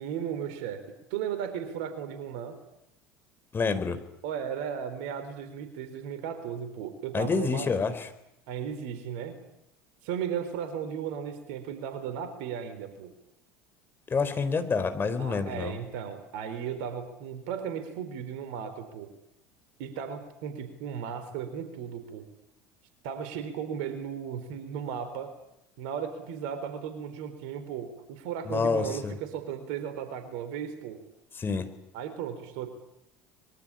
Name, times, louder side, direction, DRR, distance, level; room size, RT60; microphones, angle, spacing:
voice 1, 0.0-2.6 4.2-7.7 8.5-9.4 10.0-13.1 15.2-19.1 19.8-22.3 23.0-25.3 25.8-31.0 31.9-32.7, right 8 dB, 65° right, 10 dB, 4.0 m, -35 dB
voice 2, 3.5-4.0 7.1-8.1 14.1-15.8 28.4-29.1 31.4-31.7, left 5 dB, 25° left, 9 dB, 4.2 m, -28 dB
24.5 x 23.0 x 8.9 m, 0.81 s
hypercardioid pair, 70°, 8 cm